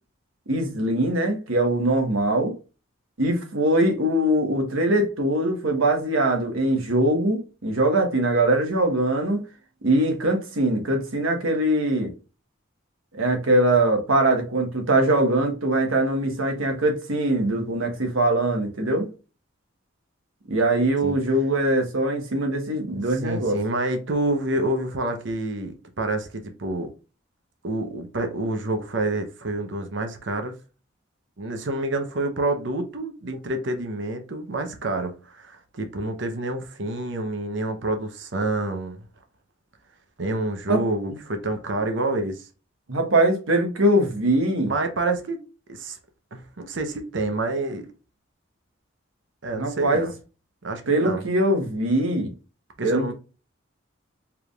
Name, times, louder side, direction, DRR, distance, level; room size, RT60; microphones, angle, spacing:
voice 1, 0.5-2.5 3.2-9.4 9.8-12.1 13.2-19.1 20.5-23.6 40.7-40.8 42.9-44.7 49.5-50.1 50.9-52.3 52.8-53.1, right 1 dB, 85° right, 1.3 m, -22 dB
voice 2, 22.9-26.9 27.6-30.5 31.4-39.0 40.2-42.5 44.7-45.4 45.7-46.0 46.3-47.9 49.4-50.1 50.6-51.2 52.8-53.1, right 2 dB, 65° right, 0.8 m, -28 dB
4.7 x 3.5 x 2.4 m
head